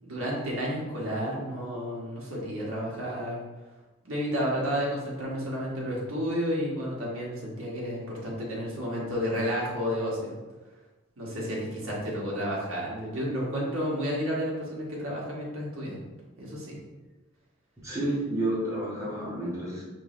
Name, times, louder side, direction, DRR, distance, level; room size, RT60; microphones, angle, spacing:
voice 1, 0.0-3.4 4.0-10.3 11.2-16.0 16.4-16.8, equal, 85° right, -4 dB, 1.4 m, -31 dB
voice 2, 17.8-19.8, right 1 dB, 15° right, -8 dB, 1.4 m, -30 dB
4.6 x 3.4 x 3.3 m, 1.2 s
head